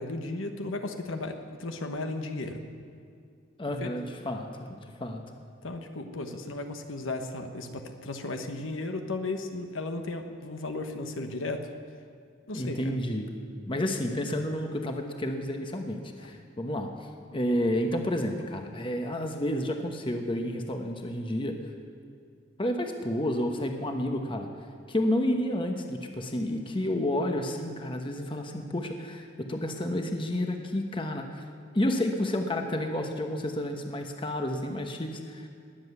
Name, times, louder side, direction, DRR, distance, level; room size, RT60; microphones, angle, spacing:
voice 1, 0.0-2.6 3.8-3.9 5.6-11.6 12.5-12.9, left 2 dB, 75° left, 5 dB, 1.2 m, -35 dB
voice 2, 3.6-5.2 12.5-13.3 13.7-21.6 22.6-24.5 24.9-31.5 31.7-35.5, left 1 dB, 25° left, 4 dB, 1.0 m, -30 dB
20.5 x 7.8 x 8.1 m, 2.3 s
head